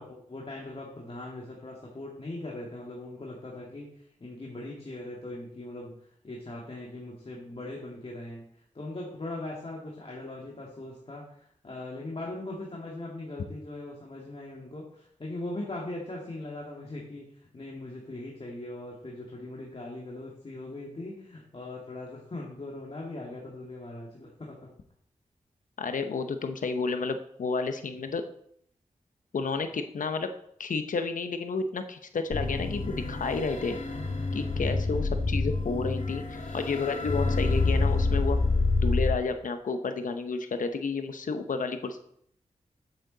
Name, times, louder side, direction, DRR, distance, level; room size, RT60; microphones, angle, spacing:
voice 1, 0.0-5.9 6.2-24.7 34.3-34.9, left 2 dB, 45° left, -3 dB, 2.0 m, -40 dB
voice 2, 25.8-28.2 29.3-30.3 30.6-33.8 34.3-38.4 38.8-42.0, left 4 dB, 85° left, 8 dB, 0.9 m, -31 dB
sound 1, 32.3-39.1, left 3 dB, 60° left, 1.7 m, -27 dB
9.2 x 8.7 x 4.0 m, 0.67 s
wide cardioid pair, 70°, 13 cm